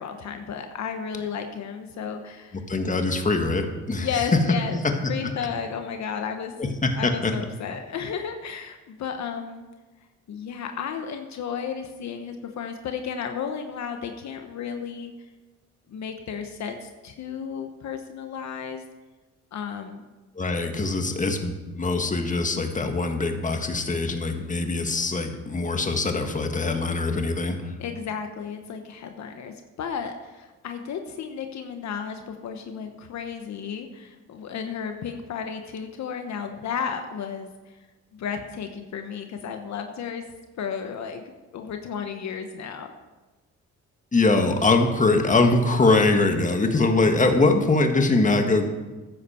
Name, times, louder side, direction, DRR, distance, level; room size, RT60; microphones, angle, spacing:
voice 1, 0.0-2.6 3.9-4.8 5.1-6.5 6.9-9.6 10.3-15.1 15.9-18.8 19.5-20.0 27.8-37.8 38.1-40.3 40.6-42.9, left 7 dB, 65° left, 6 dB, 1.1 m, -33 dB
voice 2, 2.7-4.4 4.8-5.1 6.6-7.3 20.4-27.7 44.1-48.7, left 3 dB, 25° left, 5 dB, 1.6 m, -22 dB
14.0 x 9.9 x 4.4 m, 1.2 s
cardioid pair, 90°, 30 cm